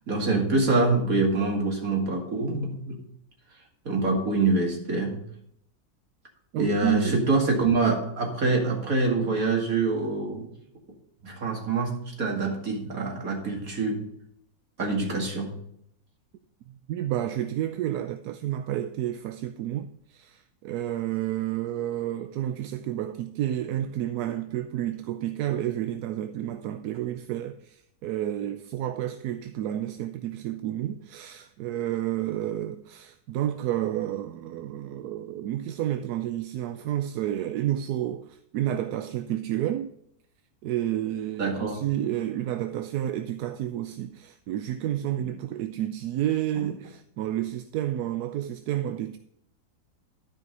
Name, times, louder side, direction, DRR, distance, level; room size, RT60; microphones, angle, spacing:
voice 1, 0.1-3.0 3.9-5.2 6.6-10.5 11.2-14.0 14.8-15.5 41.4-41.8, right 3 dB, 65° right, 2.6 m, -25 dB
voice 2, 6.5-7.3 16.9-39.9 40.6-49.2, right 12 dB, 85° right, 1.1 m, -30 dB
12.0 x 5.2 x 5.3 m
omnidirectional pair, 1.6 m